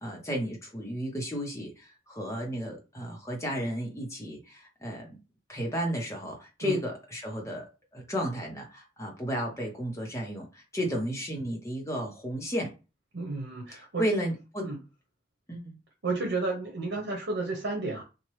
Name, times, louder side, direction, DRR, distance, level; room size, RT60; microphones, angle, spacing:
voice 1, 0.0-5.2 5.5-12.7 13.7-14.7 15.5-15.8, equal, 15° left, 0 dB, 0.8 m, -33 dB
voice 2, 13.1-14.0 14.6-14.8 16.0-18.0, right 3 dB, 85° right, 1 dB, 0.9 m, -32 dB
2.9 x 2.2 x 3.1 m, 0.30 s
head